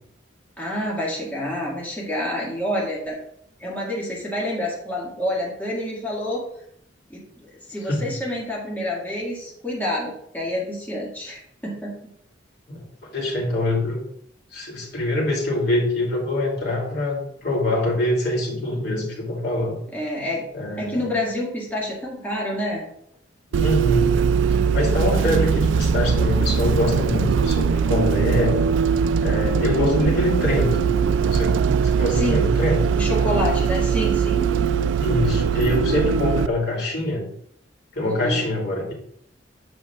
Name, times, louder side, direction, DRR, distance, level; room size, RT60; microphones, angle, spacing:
voice 1, 0.6-3.2 3.6-6.5 7.1-11.9 19.9-20.5 20.8-22.8 29.7-30.1 32.1-32.5 32.9-34.5 38.0-38.4, left 1 dB, 10° left, -5 dB, 1.8 m, -28 dB
voice 2, 13.1-14.0 14.5-19.8 20.5-21.0 23.5-24.1 24.5-28.6 29.2-31.0 31.3-32.9 35.0-37.3 37.9-38.9, left 1 dB, 60° left, -3 dB, 2.7 m, -24 dB
Bus, 23.5-36.5, right 6 dB, 80° right, 0.3 m, -21 dB
9.3 x 7.8 x 2.4 m, 0.71 s
head